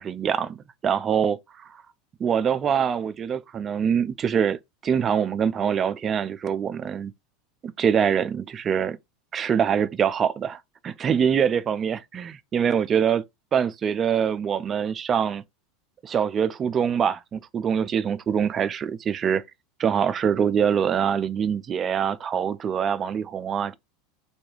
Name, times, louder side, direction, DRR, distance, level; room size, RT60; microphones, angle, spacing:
voice 1, 0.0-1.8 2.2-7.1 7.6-9.0 9.3-13.2 13.5-15.4 16.0-19.4 19.8-23.8, right 7 dB, 35° right, 0.3 m, -24 dB
2.4 x 2.2 x 3.0 m
hypercardioid pair, 85°, 0 cm